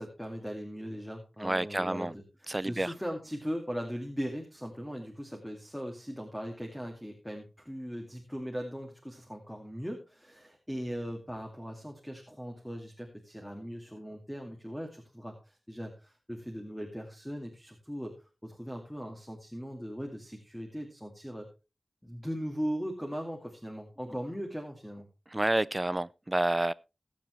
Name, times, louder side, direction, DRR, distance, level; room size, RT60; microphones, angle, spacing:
voice 1, 0.0-2.1 2.7-18.1 18.4-21.5 22.0-25.0, equal, 5° left, 2.3 m, -39 dB
voice 2, 1.4-2.1 2.5-2.9 24.1-24.2 25.3-26.7, right 1 dB, 20° right, 0.5 m, -29 dB
21.0 x 7.4 x 3.2 m
wide cardioid pair, 70°, 0 cm